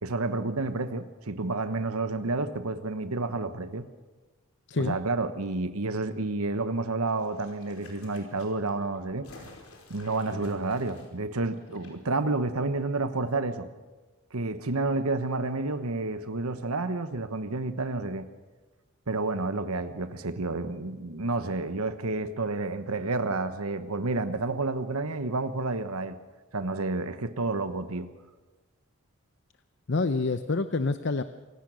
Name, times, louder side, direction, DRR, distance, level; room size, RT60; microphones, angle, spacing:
voice 1, 0.0-3.9 4.8-9.3 9.9-13.7 14.3-18.3 19.1-26.2 26.5-28.1, right 3 dB, 85° right, 10 dB, 1.1 m, -30 dB
sound 1, 7.1-11.9 12.2-12.3, left 2 dB, 80° left, 4.7 m, -52 dB
voice 2, 29.9-31.2, left 3 dB, 55° left, 11 dB, 0.7 m, -27 dB
26.5 x 17.0 x 6.3 m, 1.2 s
head